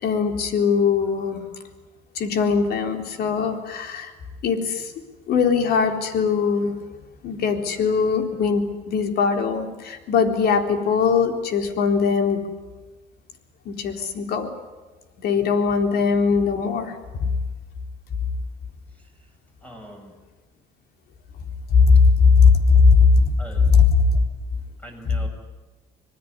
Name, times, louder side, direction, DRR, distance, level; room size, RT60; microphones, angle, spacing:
voice 1, 0.0-1.4 2.2-4.1 4.4-4.9 5.3-6.7 7.2-12.4 13.7-14.5 15.2-16.9 17.2-17.3 21.7-23.3 23.7-24.1, left 5 dB, 70° left, 5 dB, 3.9 m, -19 dB
voice 2, 19.6-20.2 23.4-23.7 24.8-25.3, right 1 dB, 10° left, 2 dB, 7.8 m, -42 dB
26.0 x 19.5 x 9.8 m, 1.2 s
cardioid pair, 110°, 17 cm